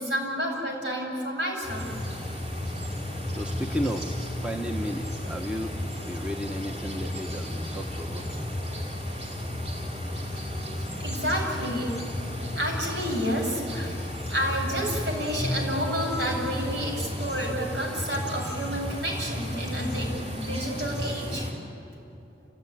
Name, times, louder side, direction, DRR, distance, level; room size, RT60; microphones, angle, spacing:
voice 1, 0.0-1.9 10.6-11.9 12.3-21.5, equal, 75° right, -1 dB, 7.6 m, -30 dB
sound 1, 1.6-21.5, left 1 dB, 30° right, 4.9 m, -33 dB
voice 2, 3.3-4.1 4.4-5.8 6.0-8.4, equal, 5° right, 3 dB, 0.9 m, -33 dB
Bowed string instrument, 15.4-16.3, left 1 dB, 20° left, 0.8 m, -34 dB
29.5 x 16.5 x 10.0 m, 2.7 s
head